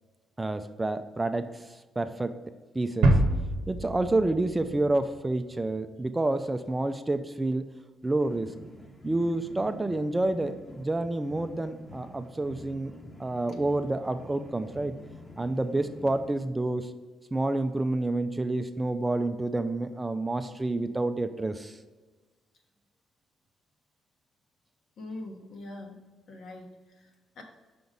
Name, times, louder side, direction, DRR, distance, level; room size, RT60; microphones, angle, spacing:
voice 1, 0.4-1.5 2.0-2.3 2.7-3.1 3.7-7.7 8.0-8.5 9.0-12.9 13.2-14.9 15.4-16.9 17.3-21.7, right 2 dB, 15° right, 9 dB, 0.4 m, -29 dB
sound 1, 3.0-5.7, right 2 dB, 85° right, 0.7 m, -26 dB
sound 2, 8.0-16.4, left 1 dB, 20° left, 1.1 m, -48 dB
voice 2, 25.0-26.0 26.3-27.4, left 2 dB, 65° left, 1 dB, 1.4 m, -43 dB
5.9 x 4.0 x 5.3 m, 1.3 s
cardioid pair, 90°, 0 cm